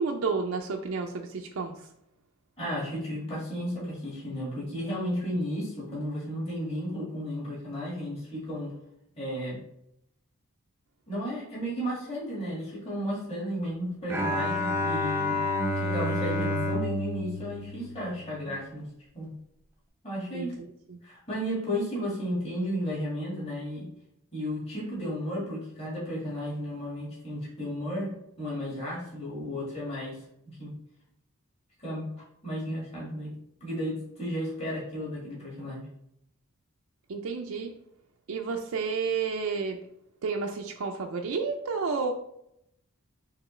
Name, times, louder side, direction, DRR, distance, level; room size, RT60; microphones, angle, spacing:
voice 1, 0.0-1.8 20.3-20.5 20.9-21.0 37.1-37.7 38.3-39.8 40.2-42.1, right 4 dB, 75° right, 3 dB, 0.4 m, -30 dB
voice 2, 2.6-8.8 9.2-9.6 11.1-15.4 15.7-18.9 19.1-19.3 20.0-20.5 21.0-23.9 24.3-30.7 31.8-32.1 32.4-33.3 33.6-35.8, equal, 30° left, -6 dB, 1.8 m, -33 dB
Bowed string instrument, 14.1-18.5, left 2 dB, 10° right, 0.5 m, -30 dB
5.9 x 2.9 x 3.1 m, 0.75 s
head